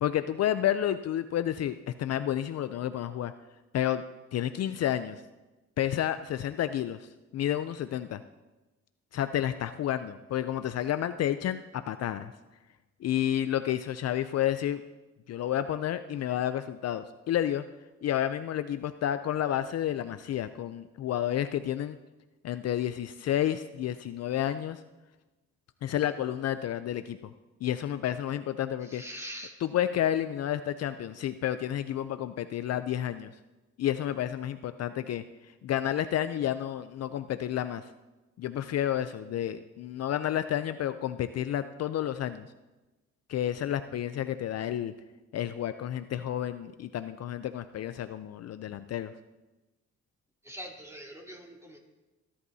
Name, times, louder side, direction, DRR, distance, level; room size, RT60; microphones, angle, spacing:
voice 1, 0.0-3.3 3.7-4.0 4.3-5.2 5.8-8.2 9.1-12.3 13.0-14.8 15.3-17.7 18.0-22.0 22.4-24.8 25.8-27.3 27.6-29.0 29.6-33.3 33.8-37.9 38.4-42.4 43.3-44.9 45.3-49.1, left 11 dB, 55° left, 11 dB, 0.5 m, -30 dB
voice 2, 28.9-29.5 50.4-51.8, equal, 10° right, -2 dB, 3.5 m, -43 dB
24.5 x 11.0 x 2.8 m, 1.1 s
cardioid pair, 90°, 30 cm